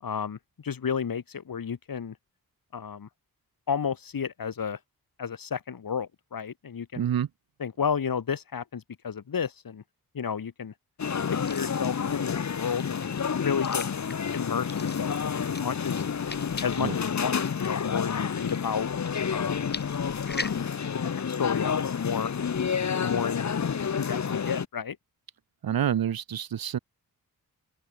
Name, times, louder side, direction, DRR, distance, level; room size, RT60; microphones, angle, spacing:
voice 1, 0.0-2.2 2.7-3.1 3.7-4.8 5.2-7.1 7.6-9.8 10.1-10.7 11.3-13.1 13.4-13.9 14.3-16.0 16.6-18.9 19.3-19.7 20.9-22.3 23.0-23.5 24.0-25.0, left 7 dB, 70° left, 5.2 m, -32 dB
voice 2, 7.0-7.3 16.8-16.9 25.6-26.8, right 9 dB, 75° right, 1.1 m, -27 dB
sound 1, 11.0-24.7, left 6 dB, 50° left, 1.5 m, -29 dB
sound 2, 11.0-20.6, left 3 dB, 25° left, 3.8 m, -43 dB
open air
wide cardioid pair, 130°, 36 cm